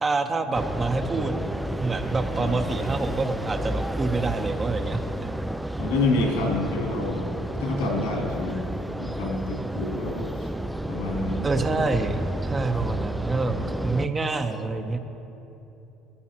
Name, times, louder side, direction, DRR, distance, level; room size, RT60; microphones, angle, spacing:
voice 1, 0.0-1.4 1.8-5.3 11.4-15.0, right 3 dB, 25° right, 7 dB, 0.9 m, -27 dB
sound 1, 0.5-14.1, right 1 dB, 5° right, 0.3 m, -31 dB
voice 2, 5.8-10.5 10.9-11.5 13.6-13.7, left 2 dB, 90° left, -1 dB, 2.7 m, -28 dB
14.0 x 13.0 x 3.0 m, 2.9 s
supercardioid pair, 85°, 0 cm